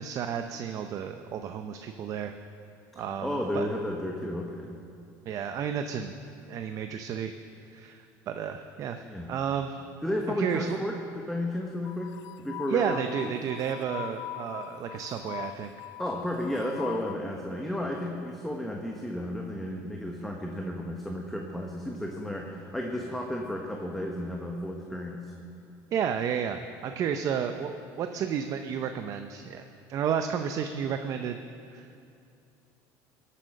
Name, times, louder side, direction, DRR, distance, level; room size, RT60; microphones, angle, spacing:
voice 1, 0.0-2.3 3.0-3.7 5.3-6.1 6.5-7.3 7.7-9.0 9.3-9.8 10.4-10.8 12.7-15.7 25.9-29.6 29.9-31.4 31.7-32.0, right 8 dB, 45° right, 7 dB, 0.6 m, -32 dB
voice 2, 2.9-4.7 9.0-9.3 10.0-13.0 13.2-13.3 16.0-25.3, left 1 dB, 5° left, 0 dB, 1.1 m, -33 dB
sound 1, 11.8-17.1, left 17 dB, 60° left, 0.4 m, -41 dB
18.5 x 8.6 x 6.4 m, 2.6 s
cardioid pair, 135°, 8 cm